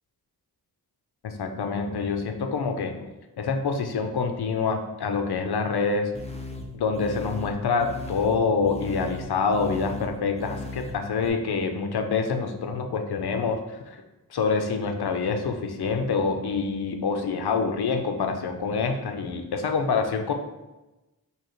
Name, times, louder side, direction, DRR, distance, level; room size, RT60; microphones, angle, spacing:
voice 1, 1.2-2.9 3.4-6.1 6.7-14.0 14.3-20.3, left 4 dB, 90° left, 6 dB, 0.6 m, -26 dB
sound 1, 6.1-11.3, left 3 dB, 15° left, 0.6 m, -38 dB
6.2 x 2.9 x 3.0 m, 1.0 s
wide cardioid pair, 60°, 38 cm